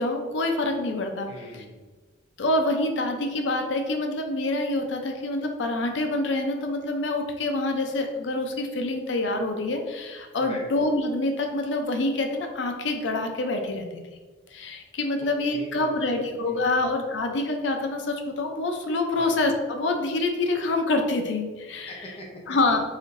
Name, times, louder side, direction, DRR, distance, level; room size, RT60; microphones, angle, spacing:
voice 1, 0.0-1.3 2.4-13.9 14.5-21.9 22.5-22.8, left 2 dB, 85° left, 4 dB, 0.5 m, -26 dB
voice 2, 1.3-1.8 10.4-10.7 15.5-16.8 19.1-19.4 21.9-22.6, left 1 dB, 30° left, -2 dB, 0.6 m, -42 dB
4.2 x 3.9 x 2.5 m, 1.3 s
head